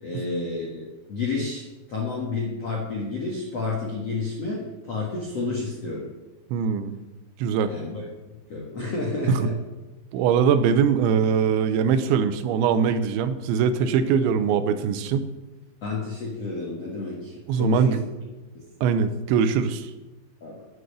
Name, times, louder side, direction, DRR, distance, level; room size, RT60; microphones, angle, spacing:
voice 1, 0.0-6.1 7.7-8.0 8.5-9.6 15.8-18.0 18.5-18.7 20.4-20.6, left 3 dB, 70° left, -4 dB, 1.5 m, -30 dB
voice 2, 6.5-7.0 7.4-7.7 9.3-9.4 10.1-15.3 17.5-18.0 18.8-19.9, right 7 dB, 80° right, 10 dB, 2.9 m, -22 dB
10.0 x 7.9 x 6.8 m, 1.1 s
omnidirectional pair, 5.8 m